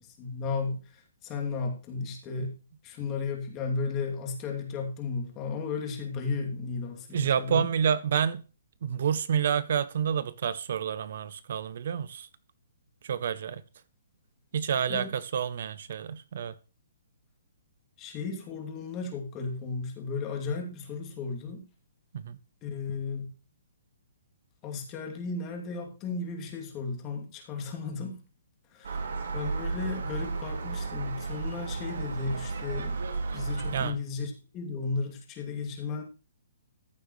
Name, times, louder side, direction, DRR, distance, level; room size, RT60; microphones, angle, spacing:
voice 1, 0.2-7.7 14.9-15.1 18.0-21.6 22.6-23.3 24.6-28.2 28.7-33.0 33.3-36.0, left 4 dB, 25° left, 2.6 m, -34 dB
voice 2, 7.1-8.4 8.8-12.3 13.0-13.6 14.5-16.5 22.1-22.4 33.7-34.0, right 8 dB, 60° right, 0.7 m, -29 dB
Gull seagull, 28.8-33.9, right 4 dB, 75° right, 2.1 m, -33 dB
14.0 x 8.1 x 3.2 m
hypercardioid pair, 155°, 0 cm